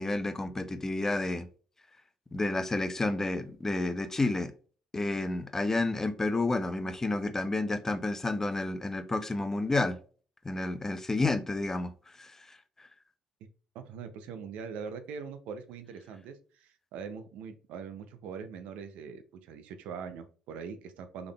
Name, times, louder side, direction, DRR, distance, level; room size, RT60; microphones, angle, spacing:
voice 1, 0.0-1.5 2.3-4.5 4.9-10.0 10.4-11.9 12.2-12.6, left 2 dB, 20° left, 0.5 m, -30 dB
voice 2, 13.7-21.3, right 6 dB, 80° right, 0.5 m, -42 dB
3.7 x 3.4 x 2.3 m
supercardioid pair, 70°, 2 cm